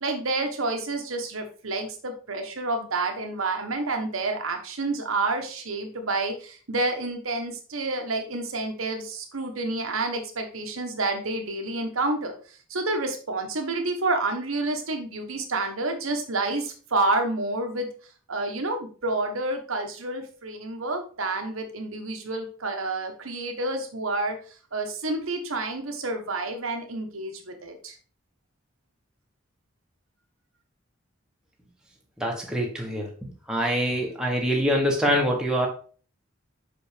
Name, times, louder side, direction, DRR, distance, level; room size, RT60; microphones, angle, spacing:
voice 1, 0.0-12.3 12.7-17.9 18.3-24.4 24.7-27.9, right 2 dB, 85° right, 5 dB, 1.2 m, -29 dB
voice 2, 32.2-33.1 33.5-35.7, equal, 5° right, -1 dB, 1.2 m, -24 dB
5.5 x 5.2 x 3.4 m, 0.40 s
head